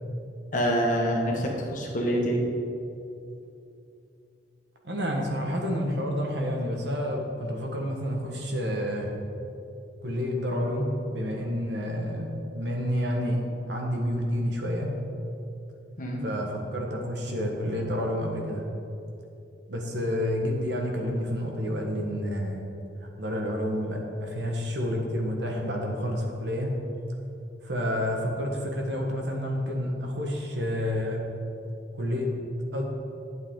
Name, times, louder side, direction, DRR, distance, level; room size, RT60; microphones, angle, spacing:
voice 1, 0.5-2.4 16.0-16.2, equal, 45° left, 0 dB, 1.4 m, -26 dB
voice 2, 4.8-9.1 10.0-13.4 13.7-14.9 16.2-18.6 19.7-22.6 23.2-26.7 27.6-31.2 31.9-32.4 32.7-32.8, equal, 70° right, 1 dB, 1.5 m, -29 dB
12.0 x 7.9 x 3.8 m, 2.7 s
head